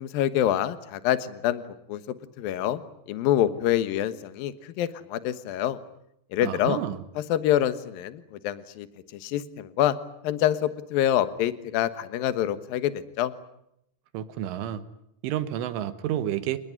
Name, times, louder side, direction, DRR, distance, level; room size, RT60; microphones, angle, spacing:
voice 1, 0.0-1.6 1.9-2.0 2.4-2.8 3.1-5.8 6.3-6.8 7.3-8.9 9.1-10.0 10.2-13.3, left 11 dB, 70° left, 12 dB, 2.3 m, -26 dB
voice 2, 6.4-7.0 14.1-14.9 15.2-16.6, right 11 dB, 75° right, 12 dB, 3.7 m, -30 dB
28.5 x 20.5 x 9.9 m, 0.78 s
omnidirectional pair, 5.9 m